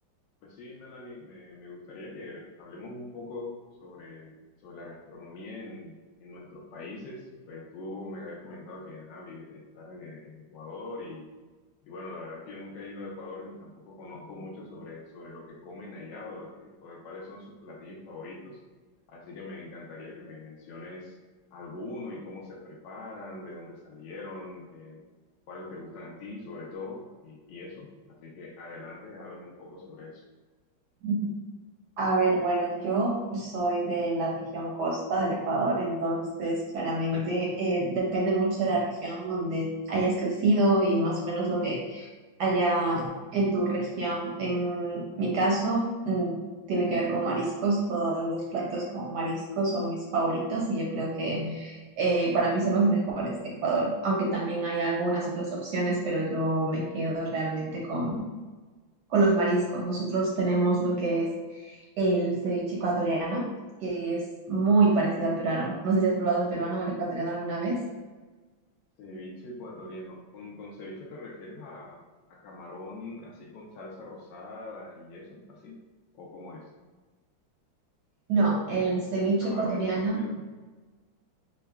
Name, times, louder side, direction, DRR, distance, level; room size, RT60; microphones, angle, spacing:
voice 1, 0.4-11.3 11.8-18.6 19.1-21.2 21.5-25.0 25.5-30.2 64.9-65.1 69.0-75.8 76.1-76.7 78.7-80.4, left 2 dB, 75° left, -2 dB, 1.2 m, -43 dB
voice 2, 32.0-42.1 42.4-43.1 43.3-46.4 46.7-58.3 59.1-63.5 63.8-67.8 78.3-80.2, right 2 dB, 70° right, -3 dB, 1.0 m, -27 dB
5.4 x 2.1 x 2.2 m, 1.3 s
omnidirectional pair, 2.2 m